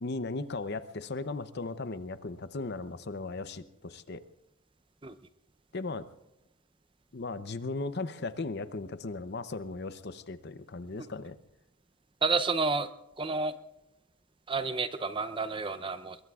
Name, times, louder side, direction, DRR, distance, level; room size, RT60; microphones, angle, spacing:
voice 1, 0.0-4.2 5.7-6.1 7.1-11.4, left 3 dB, 50° left, 12 dB, 0.7 m, -37 dB
voice 2, 12.2-12.9 13.2-13.5 14.5-16.2, right 4 dB, 25° right, 12 dB, 0.6 m, -30 dB
26.0 x 22.0 x 2.4 m, 0.88 s
head